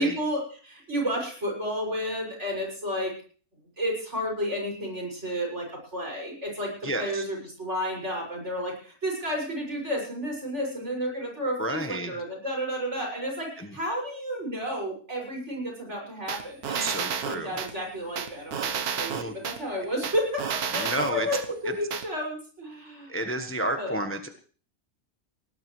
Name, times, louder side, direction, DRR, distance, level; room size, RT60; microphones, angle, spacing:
voice 1, 0.0-3.2 3.8-16.9 17.2-23.2 23.8-24.0, equal, 50° right, -1 dB, 6.9 m, -31 dB
voice 2, 6.8-7.2 11.6-12.1 13.6-13.7 16.8-17.6 19.1-19.3 20.8-21.3 23.1-24.3, right 1 dB, 10° left, 5 dB, 1.2 m, -31 dB
sound 1, 16.3-17.7 18.2-19.6 20.0-21.5 21.9-22.0, right 7 dB, 90° right, 1.6 m, -30 dB
20.0 x 18.5 x 3.3 m, 0.41 s
omnidirectional pair, 1.5 m